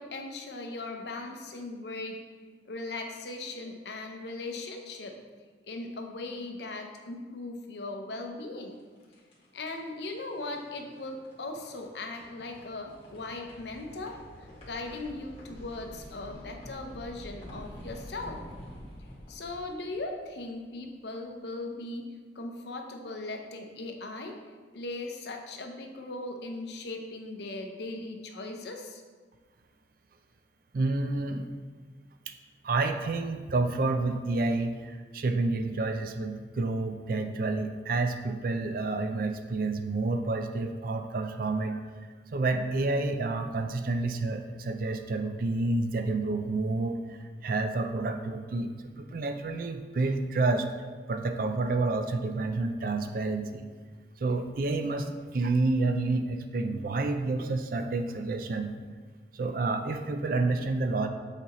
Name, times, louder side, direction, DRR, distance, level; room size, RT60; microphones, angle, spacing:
voice 1, 0.0-2.2 2.7-5.2 5.6-8.8 9.5-18.4 19.3-22.1 22.3-24.4 24.7-29.0, left 2 dB, 70° left, 3 dB, 0.7 m, -38 dB
sound 1, 8.7-20.8, equal, 35° left, 1.5 m, -48 dB
voice 2, 30.7-31.5 32.3-32.4 32.6-41.8 42.3-50.7 51.1-53.7 54.2-58.8 59.3-61.1, right 3 dB, 50° right, 7 dB, 0.4 m, -29 dB
7.9 x 4.2 x 3.0 m, 1.5 s
head